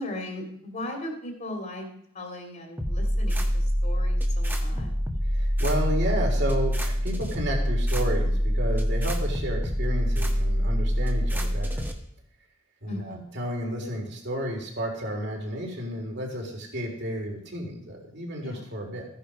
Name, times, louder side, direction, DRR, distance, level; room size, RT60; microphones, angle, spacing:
voice 1, 0.0-1.9 2.1-5.0 12.9-13.4 18.4-18.6, left 1 dB, 40° left, 3 dB, 2.4 m, -37 dB
sound 1, 2.8-11.9, equal, 10° right, 1.4 m, -25 dB
voice 2, 5.3-11.8 12.8-19.1, equal, 55° right, 1 dB, 3.5 m, -32 dB
14.5 x 10.0 x 5.0 m, 0.69 s
head